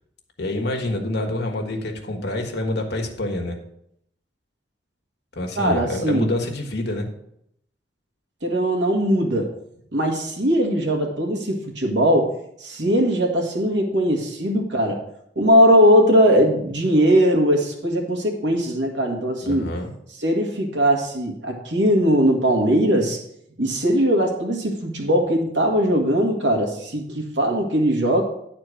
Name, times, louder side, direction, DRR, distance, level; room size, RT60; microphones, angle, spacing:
voice 1, 0.4-3.6 5.3-7.1 19.4-19.9, left 1 dB, 65° left, 2 dB, 1.5 m, -27 dB
voice 2, 5.6-6.3 8.4-9.5 9.9-15.0 15.4-19.7 20.2-23.2 23.6-28.2, equal, 80° right, 2 dB, 1.9 m, -20 dB
9.6 x 4.4 x 6.4 m, 0.73 s
head